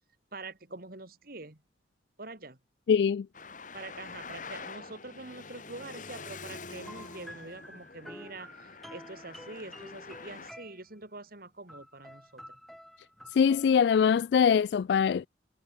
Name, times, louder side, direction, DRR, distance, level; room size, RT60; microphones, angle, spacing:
voice 1, 0.3-1.6 2.2-2.6 3.7-12.6, right 2 dB, 55° right, 2.9 m, -45 dB
voice 2, 2.9-3.3 13.3-15.3, left 7 dB, 70° left, 0.3 m, -23 dB
Traffic noise roadway noise, 3.3-10.5, left 4 dB, 45° left, 4.5 m, -46 dB
sound 1, 6.8-11.0 11.7-13.8, equal, ahead, 0.7 m, -50 dB
head